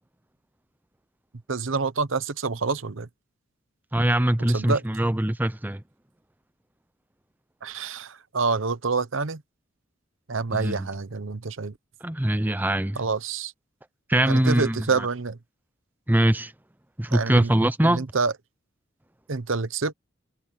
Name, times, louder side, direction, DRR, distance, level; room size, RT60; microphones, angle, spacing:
voice 1, 1.5-3.1 4.4-4.8 7.6-9.4 10.3-11.7 13.0-13.5 14.3-15.4 17.1-17.5 17.8-18.3 19.3-19.9, right 4 dB, 75° right, 0.9 m, -27 dB
voice 2, 3.9-5.8 10.5-10.9 12.0-13.0 14.1-14.8 16.1-16.5 17.0-18.0, right 1 dB, 10° right, 0.6 m, -22 dB
head